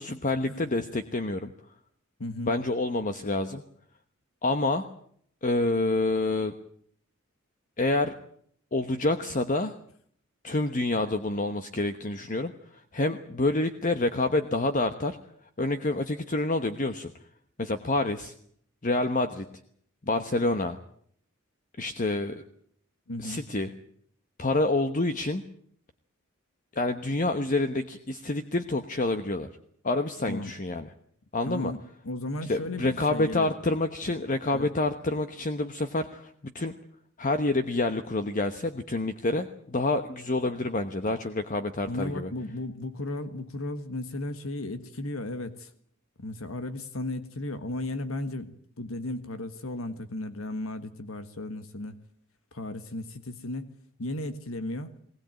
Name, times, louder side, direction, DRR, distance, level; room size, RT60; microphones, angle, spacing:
voice 1, 0.0-1.5 2.5-3.6 4.4-4.9 5.4-6.5 7.8-8.2 8.7-9.7 10.4-15.2 15.6-17.1 17.6-18.3 18.8-19.4 20.1-20.8 21.8-22.4 23.2-23.7 24.4-25.4 26.7-29.5 29.8-30.9 31.3-31.7 32.5-36.7 37.2-42.3, left 2 dB, 40° left, 1.1 m, -28 dB
voice 2, 2.2-2.6 23.1-23.4 30.3-30.5 31.5-31.8 32.0-33.5 34.5-34.7 41.8-45.7 46.2-52.0 52.5-53.7 54.0-54.9, left 2 dB, 80° left, 1.6 m, -35 dB
21.0 x 19.5 x 9.0 m
head